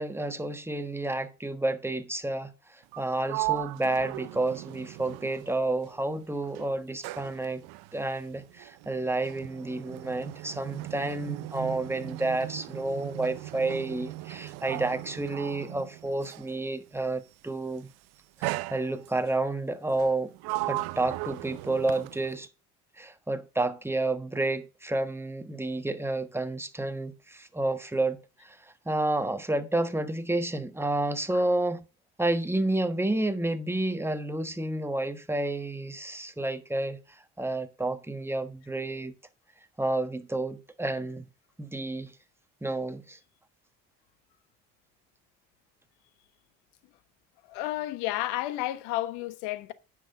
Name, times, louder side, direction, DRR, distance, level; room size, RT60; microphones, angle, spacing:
voice 1, 0.0-7.6 7.9-17.9 18.4-20.3 20.7-22.5 23.0-31.8 32.2-39.1 39.8-41.3 41.6-42.1 42.6-43.2, right 2 dB, 5° right, 1.4 m, -30 dB
Sliding door, 2.8-6.1 6.4-16.6 17.5-17.8 18.4-19.3 19.9-22.5, right 20 dB, 80° right, 0.6 m, -37 dB
voice 2, 47.5-49.7, left 15 dB, 85° left, 1.2 m, -31 dB
10.0 x 5.9 x 5.4 m
supercardioid pair, 80°, 38 cm